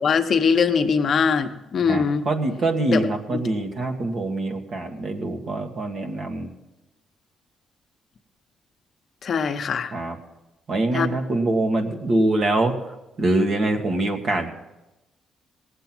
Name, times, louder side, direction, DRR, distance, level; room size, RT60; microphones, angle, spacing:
voice 1, 0.0-2.3 2.9-3.0 3.3-3.4 9.2-9.9 10.9-11.1, left 6 dB, 55° left, 7 dB, 0.9 m, -21 dB
voice 2, 1.9-6.5 9.9-10.2 10.7-12.7 13.2-14.5, right 2 dB, 55° right, 4 dB, 1.8 m, -24 dB
18.0 x 8.0 x 6.1 m, 0.98 s
cardioid pair, 90°, 0 cm